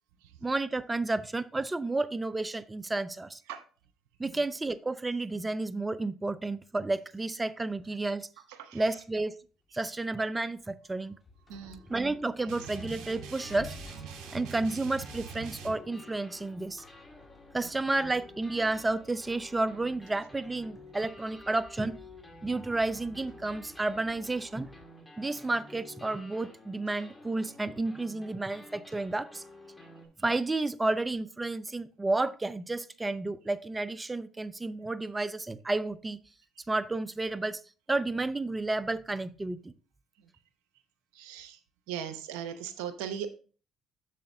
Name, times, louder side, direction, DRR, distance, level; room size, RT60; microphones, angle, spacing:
voice 1, 0.4-3.4 4.2-8.3 8.7-9.3 9.7-11.2 11.9-13.7 14.3-16.8 17.5-22.0 22.4-24.7 25.2-29.4 30.2-36.2 36.7-37.6 37.9-39.7, right 2 dB, 20° right, 16 dB, 0.5 m, -31 dB
voice 2, 8.5-8.9 11.5-11.8 12.4-12.7 40.2-40.3 41.1-41.6 41.9-43.3, right 9 dB, 85° right, 9 dB, 0.7 m, -39 dB
sound 1, 9.7-24.8, left 3 dB, 35° left, 2.1 m, -55 dB
sound 2, 10.9-11.0 11.5-11.6 12.6-30.1, left 1 dB, 15° left, 2.1 m, -51 dB
sound 3, 12.5-15.7, right 6 dB, 70° right, 1.6 m, -43 dB
7.5 x 6.8 x 2.7 m, 0.38 s
supercardioid pair, 75°, 0 cm